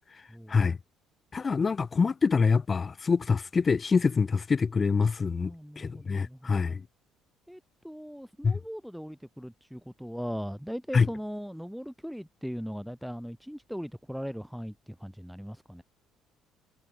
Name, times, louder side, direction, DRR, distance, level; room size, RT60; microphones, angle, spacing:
voice 1, 0.3-0.7 5.4-6.6 7.5-15.8, equal, ahead, 3.6 m, -39 dB
voice 2, 1.3-6.8 8.4-8.6 10.9-11.1, left 5 dB, 25° left, 5.1 m, -25 dB
cardioid pair, 125°, 0 cm